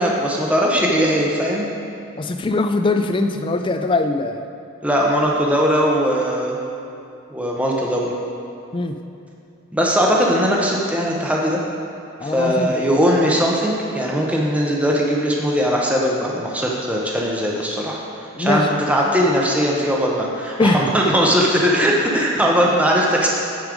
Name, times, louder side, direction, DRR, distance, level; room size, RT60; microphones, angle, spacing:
voice 1, 0.0-1.7 4.8-6.6 7.3-8.1 9.7-11.6 12.2-18.0 18.4-23.3, equal, 5° right, -2 dB, 0.7 m, -19 dB
voice 2, 2.2-4.4 8.7-8.9 12.2-12.7 18.4-18.7 20.6-21.1, left 2 dB, 25° left, 7 dB, 0.3 m, -21 dB
9.3 x 5.2 x 5.0 m, 2.6 s
head